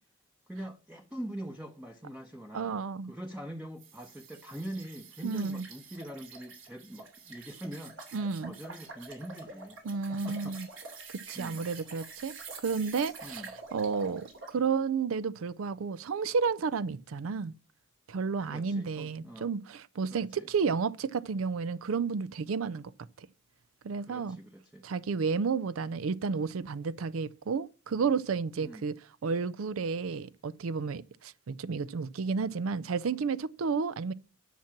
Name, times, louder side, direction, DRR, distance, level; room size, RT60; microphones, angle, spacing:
voice 1, 0.5-2.8 3.0-10.6 11.3-11.6 13.2-13.5 18.4-19.5 20.1-20.5 24.0-24.9 28.6-28.9, right 1 dB, 5° right, 0.7 m, -43 dB
voice 2, 2.5-3.1 5.2-5.6 8.1-8.5 9.8-10.7 11.3-12.3 12.6-13.4 13.7-17.5 18.1-22.9 23.2-23.3 23.8-24.4 24.8-28.9 29.2-34.1, right 5 dB, 90° right, 0.5 m, -31 dB
sound 1, 3.8-14.6, right 4 dB, 70° right, 2.8 m, -47 dB
10.5 x 5.9 x 5.9 m
head